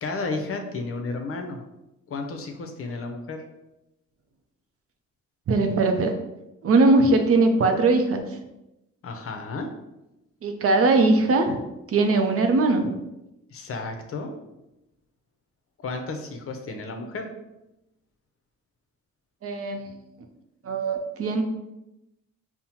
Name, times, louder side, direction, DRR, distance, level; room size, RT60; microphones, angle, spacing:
voice 1, 0.0-1.6 2.1-3.4 9.0-9.7 13.5-14.3 15.8-17.3, left 3 dB, 50° left, 4 dB, 0.7 m, -32 dB
voice 2, 5.5-6.2 6.6-8.2 10.4-11.6 11.9-12.9 19.4-19.9 20.6-21.4, right 3 dB, 50° right, 5 dB, 0.6 m, -20 dB
5.4 x 2.1 x 2.9 m, 0.92 s
cardioid pair, 90°, 30 cm